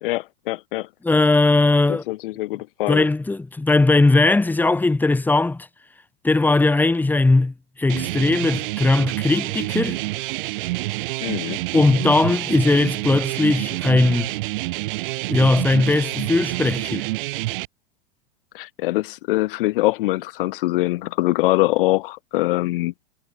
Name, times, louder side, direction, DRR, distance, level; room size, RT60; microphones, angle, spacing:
voice 1, 0.0-0.9 1.9-3.1 11.2-11.6 18.5-22.9, left 19 dB, 65° left, 1.2 m, -23 dB
voice 2, 1.0-2.0 2.9-5.7 6.2-10.0 11.7-14.3 15.3-17.0, left 2 dB, 5° left, 1.8 m, -19 dB
sound 1, 7.9-17.7, right 21 dB, 60° right, 2.1 m, -27 dB
supercardioid pair, 130°, 30 cm